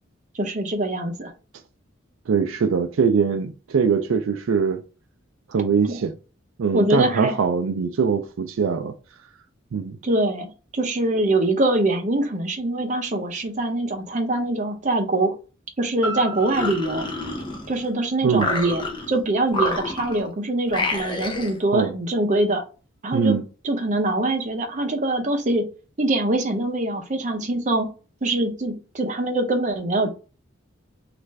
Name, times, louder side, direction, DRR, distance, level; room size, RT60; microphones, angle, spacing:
voice 1, 0.4-1.3 5.9-6.0 6.7-7.4 10.0-10.5 10.7-15.3 15.8-17.1 17.7-22.6 23.0-23.4 23.6-25.6 26.0-27.9 28.2-30.1, right 2 dB, 40° right, 0.6 m, -23 dB
voice 2, 2.3-4.8 5.5-6.1 6.6-8.9 9.7-10.0 18.2-18.5 21.7-21.9 23.1-23.4, right 6 dB, 80° right, 0.4 m, -22 dB
sound 1, 16.0-20.1 20.5-20.6, right 2 dB, 55° left, 1.7 m, -37 dB
sound 2, 16.3-17.9 18.3-19.2 19.5-20.3 20.7-21.6, left 2 dB, 25° left, 0.6 m, -28 dB
3.2 x 2.5 x 3.2 m
head